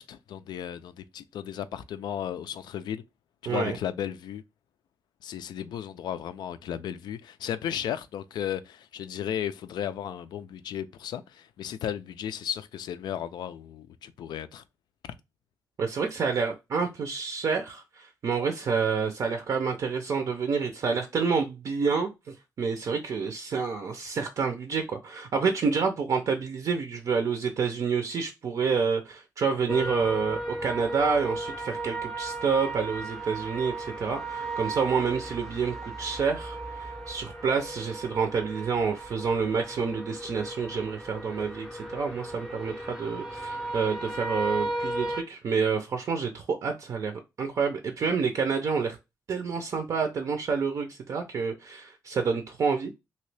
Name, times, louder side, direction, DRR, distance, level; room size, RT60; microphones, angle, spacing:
voice 1, 0.0-3.0 3.4-4.4 5.2-14.6, left 9 dB, 85° left, 0.4 m, -34 dB
voice 2, 3.4-3.8 15.8-49.0 49.3-52.9, right 5 dB, 50° right, 0.5 m, -28 dB
sound 1, 29.7-45.2, right 2 dB, 5° left, 0.5 m, -35 dB
2.9 x 2.7 x 3.2 m
wide cardioid pair, 160°, 7 cm